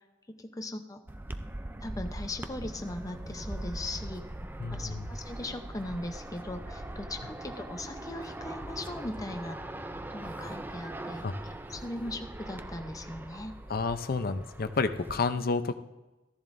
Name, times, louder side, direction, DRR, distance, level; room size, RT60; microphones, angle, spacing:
voice 1, 0.3-1.0 1.8-4.3 4.7-9.6 10.1-11.3 11.7-13.5, left 1 dB, 20° left, 6 dB, 0.8 m, -39 dB
sound 1, 1.1-15.2, right 1 dB, 10° right, 0.4 m, -41 dB
voice 2, 4.6-5.1 11.2-11.3 13.7-15.7, left 4 dB, 50° left, 9 dB, 0.6 m, -30 dB
14.5 x 10.5 x 2.6 m, 1.1 s
head